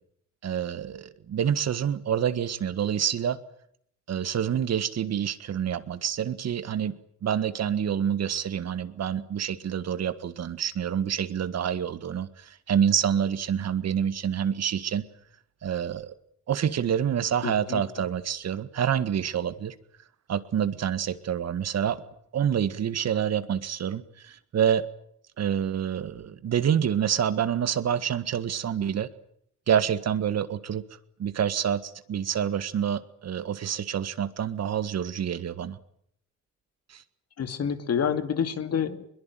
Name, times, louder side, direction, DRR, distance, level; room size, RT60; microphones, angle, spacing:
voice 1, 0.4-3.4 4.1-6.9 7.2-15.0 15.6-16.1 16.5-19.8 20.3-22.0 22.3-24.9 25.4-29.1 29.7-30.8 31.2-35.8 36.9-37.0, right 8 dB, 60° right, 13 dB, 1.7 m, -27 dB
voice 2, 17.4-18.0 37.4-39.1, left 7 dB, 55° left, 10 dB, 2.5 m, -28 dB
22.0 x 22.0 x 9.3 m, 0.69 s
cardioid pair, 90°, 30 cm